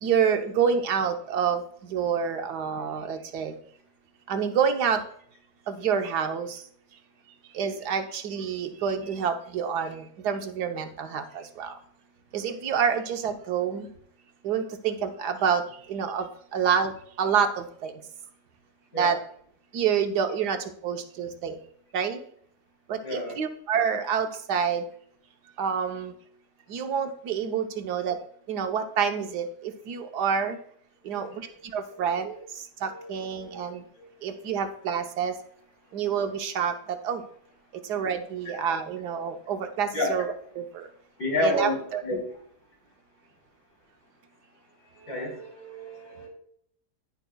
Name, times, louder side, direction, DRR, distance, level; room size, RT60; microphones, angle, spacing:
voice 1, 0.0-3.6 4.3-5.0 5.7-6.6 7.5-11.8 12.3-13.9 14.4-18.0 19.0-19.2 19.7-21.6 21.9-22.2 22.9-24.9 25.6-26.1 26.7-28.2 28.5-30.6 31.0-31.4 31.7-33.8 34.2-35.4 35.9-37.2 37.8-40.9 41.4-42.0, right 7 dB, 80° right, 6 dB, 1.5 m, -28 dB
voice 2, 23.0-23.4 31.0-31.6 31.9-32.4 32.8-33.5 34.0-34.4 39.9-40.2 41.2-42.4 44.9-46.3, left 1 dB, 75° left, -2 dB, 4.3 m, -31 dB
11.0 x 10.5 x 2.3 m, 0.63 s
omnidirectional pair, 1.7 m